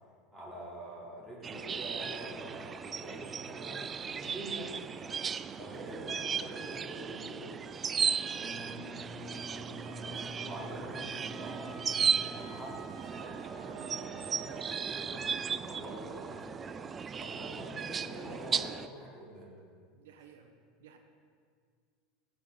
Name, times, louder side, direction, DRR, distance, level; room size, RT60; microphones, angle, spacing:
voice 1, 0.3-7.5 10.0-11.8 12.0-16.9 17.2-19.5, right 1 dB, ahead, -8 dB, 3.4 m, -46 dB
sound 1, 1.4-18.9, right 6 dB, 25° right, 0.3 m, -36 dB
voice 2, 8.2-8.6 9.4-10.0 19.9-20.5 20.8-21.0, right 6 dB, 85° right, 4 dB, 1.1 m, -57 dB
Wind instrument woodwind instrument, 8.3-12.9, left 1 dB, 55° left, 2.4 m, -47 dB
Wind instrument woodwind instrument 2, 9.8-15.0, right 7 dB, 50° right, 1.0 m, -51 dB
15.0 x 8.1 x 3.9 m, 2.1 s
supercardioid pair, 130°, 0 cm